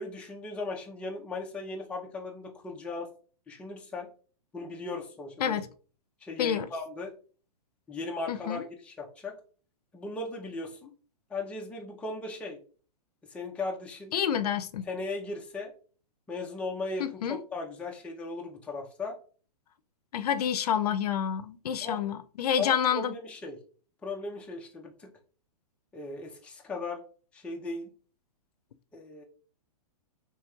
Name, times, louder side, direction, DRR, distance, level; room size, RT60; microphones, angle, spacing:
voice 1, 0.0-3.1 3.5-4.1 4.5-5.6 6.2-7.1 7.9-9.4 9.9-10.9 11.3-12.6 13.3-14.1 14.9-15.7 16.3-19.2 21.8-22.0 22.6-23.6 24.0-25.1 25.9-27.0 27.3-27.9 28.9-29.2, left 3 dB, 5° left, 0.5 m, -37 dB
voice 2, 8.3-8.6 14.1-14.9 17.0-17.4 20.1-23.1, left 8 dB, 75° left, 0.5 m, -28 dB
4.5 x 3.2 x 2.3 m
hypercardioid pair, 150°, 20 cm